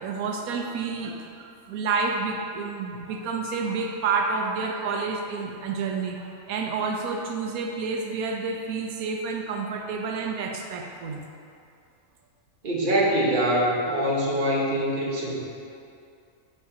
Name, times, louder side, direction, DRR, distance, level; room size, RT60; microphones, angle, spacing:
voice 1, 0.0-11.3, right 4 dB, 90° right, 2 dB, 1.1 m, -29 dB
voice 2, 12.6-15.4, equal, 40° right, -5 dB, 1.1 m, -24 dB
7.4 x 5.6 x 2.7 m, 2.5 s
omnidirectional pair, 1.5 m